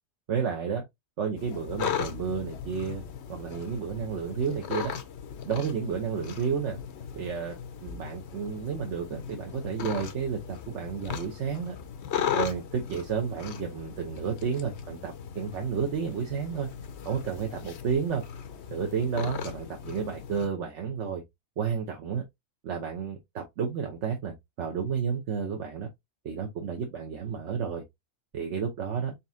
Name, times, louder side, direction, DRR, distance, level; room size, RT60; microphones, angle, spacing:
voice 1, 0.3-0.8 1.2-3.0 3.3-4.9 5.4-6.8 7.2-11.8 12.3-16.7 17.0-18.2 18.7-21.2 21.6-22.2 22.6-25.9 26.2-27.8 28.3-29.1, right 6 dB, 55° right, 1.0 m, -31 dB
sound 1, 1.4-20.5, left 8 dB, 60° left, 0.8 m, -37 dB
4.2 x 3.6 x 2.6 m
omnidirectional pair, 1.6 m